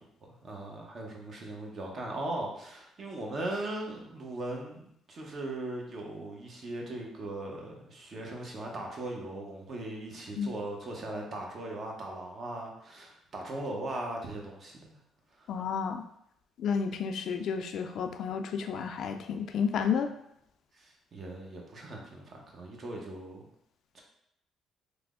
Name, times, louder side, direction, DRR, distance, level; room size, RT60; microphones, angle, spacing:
voice 1, 0.2-15.0 15.4-15.5 20.8-23.5 23.9-24.0, right 2 dB, 45° right, 0 dB, 0.8 m, -39 dB
voice 2, 15.5-16.0 16.6-20.1, left 6 dB, 70° left, 7 dB, 0.3 m, -31 dB
3.3 x 2.0 x 3.6 m, 0.74 s
cardioid pair, 95°, 0 cm